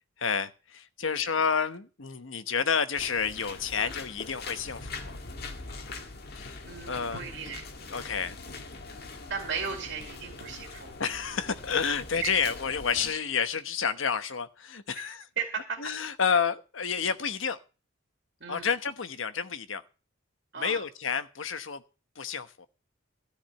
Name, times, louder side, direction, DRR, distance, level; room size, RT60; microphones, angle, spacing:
voice 1, 0.2-5.2 6.3-6.6 6.9-7.2 7.9-8.4 11.0-15.3 15.8-17.6 18.5-19.8 20.6-21.8 22.2-22.7, left 6 dB, 75° left, 1.0 m, -30 dB
sound 1, 2.9-13.1, left 3 dB, 50° left, 1.7 m, -42 dB
voice 2, 6.7-7.7 9.3-10.9 12.2-12.4 15.0-15.1 15.4-15.9 18.4-18.7 20.5-20.8, right 6 dB, 60° right, 2.4 m, -36 dB
13.5 x 5.0 x 8.8 m
head